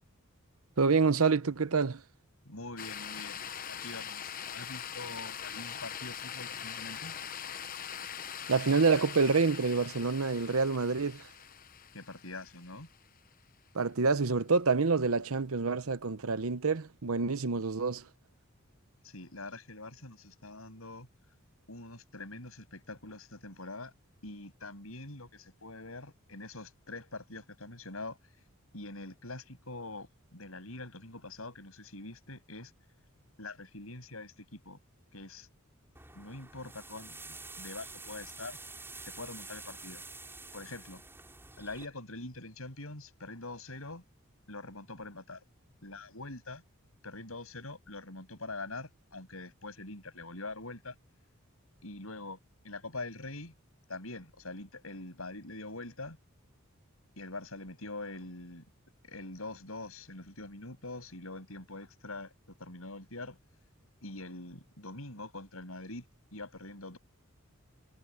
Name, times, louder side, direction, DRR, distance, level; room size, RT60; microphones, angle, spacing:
voice 1, 0.8-2.0 8.5-11.3 13.7-18.0, right 4 dB, 80° right, 0.9 m, -27 dB
voice 2, 2.4-7.2 11.9-12.9 19.0-21.1 21.7-23.9 24.2-28.2 28.7-32.7 33.4-34.8 35.1-35.5 36.1-38.6 39.1-40.0 40.5-41.0 41.6-44.0 44.5-45.4 45.8-46.6 47.0-51.0 51.8-52.4 52.6-53.5 53.9-56.2 57.2-58.7 59.0-62.3 62.6-63.4 64.0-66.0 66.3-67.0, left 2 dB, 75° left, 7.7 m, -44 dB
sound 1, 2.8-13.1, left 8 dB, 40° left, 0.9 m, -42 dB
sound 2, 35.9-41.9, right 3 dB, 10° right, 6.3 m, -48 dB
head